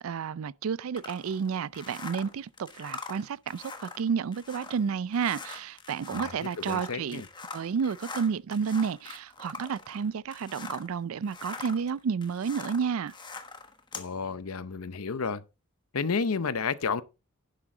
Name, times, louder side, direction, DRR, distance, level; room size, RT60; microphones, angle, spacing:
voice 1, 0.0-7.2 7.5-13.1, right 6 dB, 70° right, 0.4 m, -31 dB
sound 1, 1.0-10.9 11.2-14.1, left 4 dB, 20° left, 1.2 m, -43 dB
voice 2, 6.1-7.3 13.9-15.4 15.9-17.0, left 5 dB, 85° left, 0.7 m, -31 dB
11.0 x 7.5 x 3.8 m
head